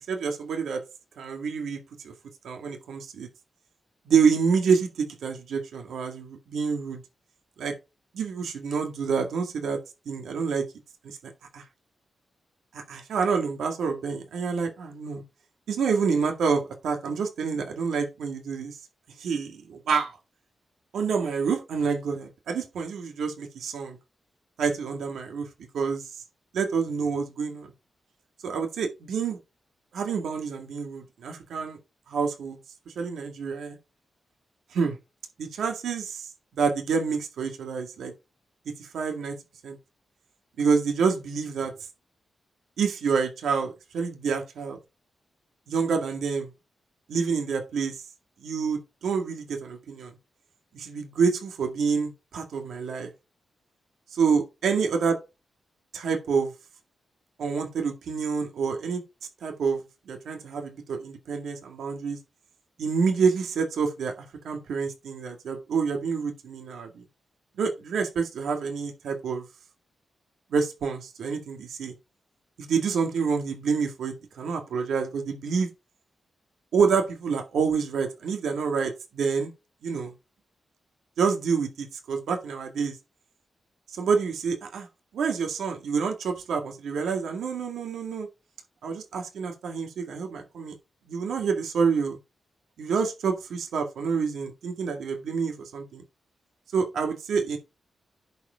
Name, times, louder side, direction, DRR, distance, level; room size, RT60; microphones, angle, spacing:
voice 1, 0.1-0.8 1.2-2.1 2.4-3.3 4.1-7.0 7.6-7.8 8.1-9.8 10.1-10.7 11.0-11.6 12.7-15.2 15.7-18.8 19.2-20.2 20.9-24.0 24.6-25.5 25.7-26.1 26.5-27.7 28.4-29.4 29.9-31.8 32.1-32.6 32.9-33.8 34.7-35.0 35.4-36.3 36.6-38.1 38.7-39.4 39.6-39.8 40.6-41.7 42.8-44.8 45.7-46.5 47.1-48.0 48.4-50.1 50.7-53.1 54.1-55.2 55.9-56.5 57.4-59.0 59.4-62.2 62.8-67.0 67.6-69.5 70.5-71.9 72.6-75.7 76.7-79.5 79.8-80.1 81.2-83.0 83.9-84.9 85.1-88.3 88.8-90.8 91.1-92.2 92.8-96.0 96.7-97.6, right 5 dB, 90° right, 2.0 m, -28 dB
10.5 x 4.8 x 4.7 m
cardioid pair, 65°, 0 cm